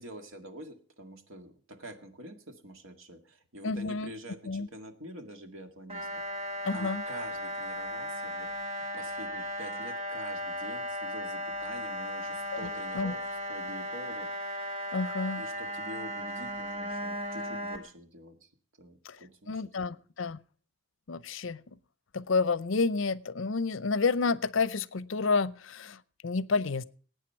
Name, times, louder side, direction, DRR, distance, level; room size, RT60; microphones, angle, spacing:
voice 1, 0.0-8.5 8.9-14.7 15.3-18.5 18.8-20.0, right 1 dB, 80° right, 6 dB, 1.9 m, -47 dB
voice 2, 3.6-4.1 4.5-4.7 6.6-7.0 12.9-13.1 14.9-15.4 19.1-19.2 19.5-20.4 21.1-21.6 22.1-26.0 26.2-26.8, left 4 dB, 75° left, 18 dB, 0.7 m, -29 dB
sound 1, 5.9-17.8, equal, 30° right, 1.9 m, -36 dB
19.0 x 9.1 x 4.4 m, 0.43 s
head